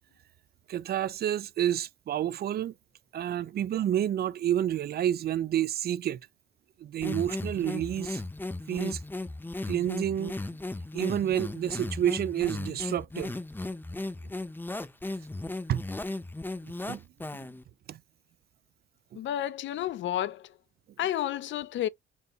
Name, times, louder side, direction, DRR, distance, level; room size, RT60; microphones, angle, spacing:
voice 1, 0.7-2.7 3.1-6.2 6.8-8.2 8.7-9.0 9.7-10.3 10.9-13.3 15.7-15.8 16.6-17.0 17.9-18.0, right 11 dB, 55° right, 0.4 m, -29 dB
sound 1, 7.0-17.6, left 2 dB, 10° left, 0.7 m, -36 dB
voice 2, 19.2-20.4 21.0-21.9, left 11 dB, 70° left, 0.6 m, -31 dB
4.5 x 2.6 x 3.1 m
cardioid pair, 90°, 20 cm